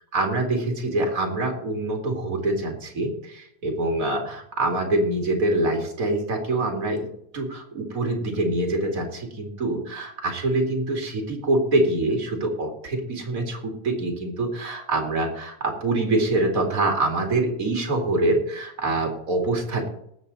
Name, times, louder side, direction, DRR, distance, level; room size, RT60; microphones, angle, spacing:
voice 1, 0.1-7.1 7.3-19.9, right 2 dB, 40° right, 2 dB, 2.9 m, -25 dB
19.5 x 7.6 x 4.1 m, 0.74 s
omnidirectional pair, 2.4 m